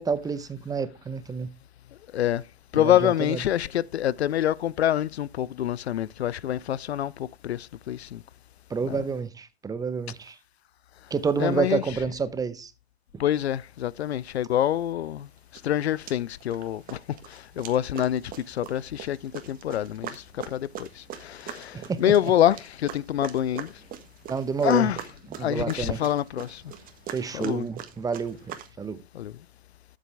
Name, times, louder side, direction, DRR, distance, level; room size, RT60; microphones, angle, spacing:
voice 1, 0.0-1.5 2.8-3.4 8.7-10.4 11.1-12.7 13.1-13.2 21.7-22.0 24.3-24.9 25.3-26.0 27.1-28.4 28.8-29.0, right 5 dB, 10° right, 0.8 m, -29 dB
voice 2, 2.7-8.2 8.9-9.0 11.4-11.8 13.2-15.3 15.6-23.7 24.6-25.0 25.4-26.6 27.3-27.7 29.1-29.3, left 11 dB, 80° left, 0.5 m, -26 dB
sound 1, 15.6-15.7 16.1-16.6 16.9-28.7, right 10 dB, 25° right, 1.5 m, -42 dB
12.0 x 7.5 x 3.4 m
hypercardioid pair, 110°, 32 cm